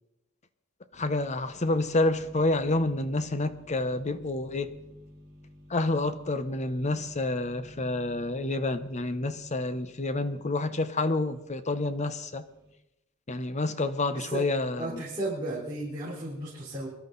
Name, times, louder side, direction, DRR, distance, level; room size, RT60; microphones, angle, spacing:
voice 1, 0.9-4.7 5.7-12.4 13.3-15.0, left 2 dB, 35° left, 0.9 m, -28 dB
sound 1, 0.9-12.7, left 1 dB, 60° right, 3.4 m, -51 dB
voice 2, 14.1-14.4 14.8-16.9, right 1 dB, 20° right, 3.8 m, -34 dB
23.5 x 12.0 x 4.0 m
head